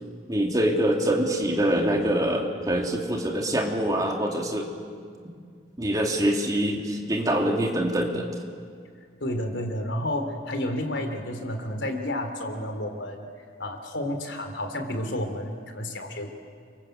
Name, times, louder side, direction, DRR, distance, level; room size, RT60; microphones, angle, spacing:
voice 1, 0.3-4.7 5.8-8.3, right 1 dB, 20° right, 0 dB, 3.0 m, -24 dB
voice 2, 9.2-13.3 13.6-16.3, left 1 dB, 85° left, 5 dB, 3.3 m, -31 dB
29.0 x 25.5 x 8.0 m, 2.1 s
head